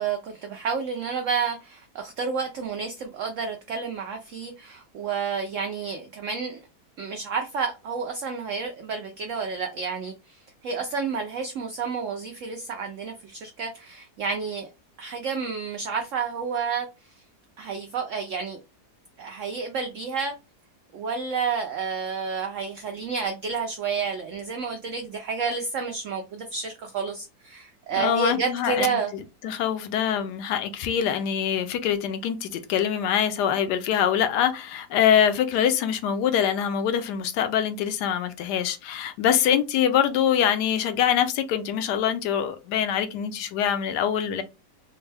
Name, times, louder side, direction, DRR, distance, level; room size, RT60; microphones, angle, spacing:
voice 1, 0.0-6.6 7.0-14.7 15.0-17.1 17.6-18.6 19.2-20.4 20.9-29.1, right 5 dB, 70° right, 0.7 m, -30 dB
voice 2, 27.9-29.0 29.4-44.4, left 9 dB, 80° left, 1.1 m, -24 dB
3.5 x 2.1 x 3.2 m
omnidirectional pair, 1.8 m